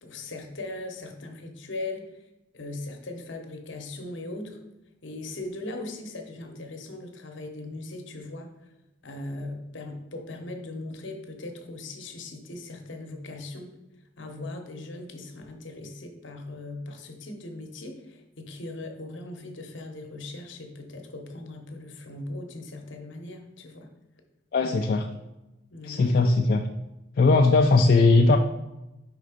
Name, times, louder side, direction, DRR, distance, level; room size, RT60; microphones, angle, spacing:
voice 1, 0.0-2.1 2.5-4.6 5.0-8.5 9.0-13.7 14.2-23.9 24.6-24.8 25.7-26.4, left 2 dB, 65° left, 4 dB, 0.8 m, -39 dB
voice 2, 24.5-25.1 25.8-26.6 27.2-28.4, left 3 dB, 45° left, 3 dB, 0.3 m, -19 dB
5.1 x 3.8 x 4.9 m, 0.99 s
head